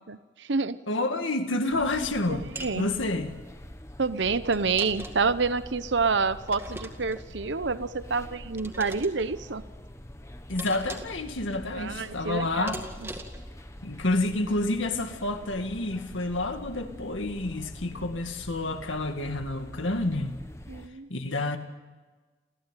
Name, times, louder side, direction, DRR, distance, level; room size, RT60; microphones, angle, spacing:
voice 1, 0.1-0.8 2.3-2.9 4.0-9.6 11.7-12.7 13.0-13.1 20.7-21.1, right 4 dB, 70° right, 0.9 m, -28 dB
voice 2, 0.9-2.4 2.8-3.3 10.5-12.8 13.8-20.4 21.1-21.6, left 2 dB, 85° left, 2.2 m, -29 dB
sound 1, 1.7-20.9, left 1 dB, 15° left, 1.2 m, -45 dB
sound 2, 2.6-2.8 4.5-5.4 6.5-7.3 8.6-9.1 10.6-11.2 12.7-13.5, right 1 dB, 10° right, 2.0 m, -40 dB
29.0 x 14.5 x 9.2 m
head